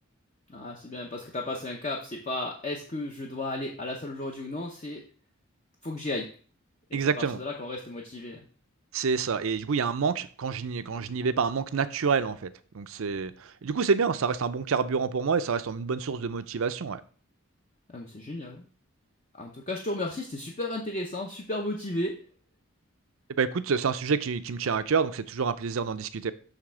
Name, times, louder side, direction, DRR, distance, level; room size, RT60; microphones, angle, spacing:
voice 1, 0.5-5.0 5.8-6.3 6.9-8.4 17.9-18.6 19.4-22.2, left 2 dB, 30° left, 1 dB, 0.7 m, -34 dB
voice 2, 6.9-7.4 8.9-17.0 23.4-26.3, right 5 dB, 70° right, 13 dB, 0.5 m, -28 dB
6.6 x 3.3 x 6.1 m, 0.43 s
head